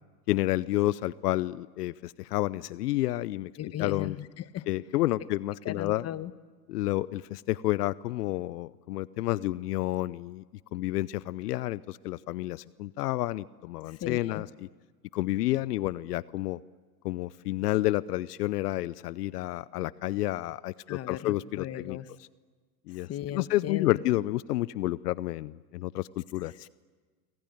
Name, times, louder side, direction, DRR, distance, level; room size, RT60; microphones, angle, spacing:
voice 1, 0.3-3.5 3.8-4.2 4.7-6.1 6.7-10.4 10.7-14.5 15.1-16.6 17.0-22.0 22.9-26.5, left 16 dB, 75° left, 19 dB, 0.7 m, -30 dB
voice 2, 3.6-4.7 5.6-6.3 13.9-14.4 20.9-22.1 22.9-24.0 26.6-26.7, left 12 dB, 30° left, 13 dB, 1.3 m, -37 dB
27.0 x 23.5 x 9.4 m, 1.4 s
hypercardioid pair, 105°, 47 cm